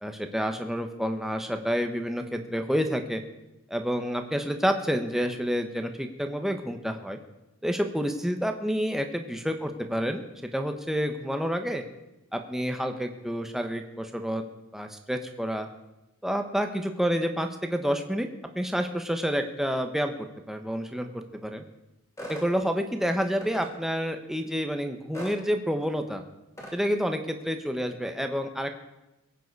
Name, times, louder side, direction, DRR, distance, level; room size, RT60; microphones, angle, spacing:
voice 1, 0.0-3.2 3.7-7.2 7.6-11.8 12.3-14.4 14.7-15.7 16.2-18.3 18.5-20.1 20.5-21.6 22.3-26.2 26.7-28.7, equal, ahead, 5 dB, 1.0 m, -29 dB
sound 1, 22.2-22.5 23.4-23.7 25.1-25.4 26.6-26.8, equal, 15° left, 2.6 m, -38 dB
22.0 x 9.2 x 4.7 m, 0.98 s
head